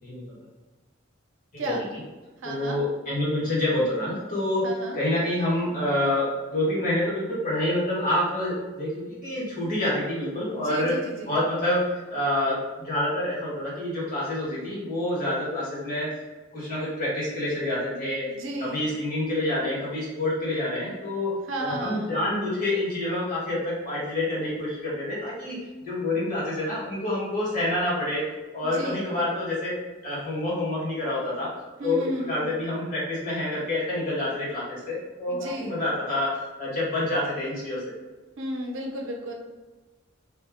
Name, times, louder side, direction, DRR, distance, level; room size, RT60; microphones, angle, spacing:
voice 1, 0.0-0.3 1.6-1.7 2.4-4.7 4.9-10.9 11.3-11.8 12.1-16.1 16.5-18.3 18.6-28.2 28.5-29.7 30.0-31.5 31.8-36.3 36.6-37.9, left 1 dB, 40° left, -8 dB, 1.5 m, -27 dB
voice 2, 2.4-2.8 4.6-5.0 10.5-11.3 18.3-18.9 21.5-22.1 28.7-29.1 31.8-32.5 35.3-35.8 38.4-39.3, right 1 dB, 85° right, 0 dB, 0.7 m, -33 dB
3.2 x 2.2 x 3.5 m, 1.2 s
head